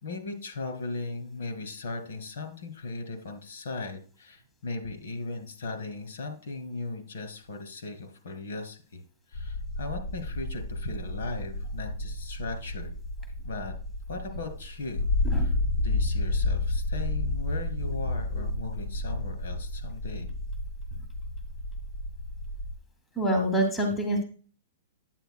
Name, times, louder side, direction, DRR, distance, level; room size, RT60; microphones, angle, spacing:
voice 1, 0.0-9.0 9.3-12.9 13.4-13.7 14.1-15.1 15.3-20.3, left 3 dB, 75° left, 7 dB, 2.4 m, -38 dB
sound 1, 9.3-22.8, left 2 dB, 55° left, 1.0 m, -31 dB
voice 2, 23.1-24.2, right 1 dB, 5° left, 2 dB, 1.0 m, -26 dB
9.1 x 8.1 x 2.2 m, 0.39 s
hypercardioid pair, 175°, 0 cm